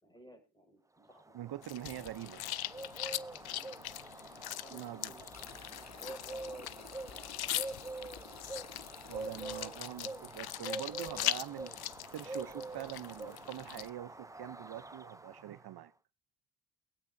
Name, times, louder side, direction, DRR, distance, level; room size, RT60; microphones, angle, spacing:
voice 1, 0.0-1.4 3.4-3.7 4.5-7.6, equal, 10° left, 5.6 m, -58 dB
Bird, 1.1-15.8, right 2 dB, 10° right, 0.6 m, -46 dB
voice 2, 1.3-2.4 4.7-5.1 9.1-11.8 12.1-15.9, right 13 dB, 70° right, 0.7 m, -44 dB
sound 1, 1.6-13.9, left 14 dB, 70° left, 0.6 m, -41 dB
sound 2, 5.3-10.5, left 6 dB, 40° left, 1.0 m, -53 dB
23.0 x 8.5 x 2.6 m
cardioid pair, 85°, 40 cm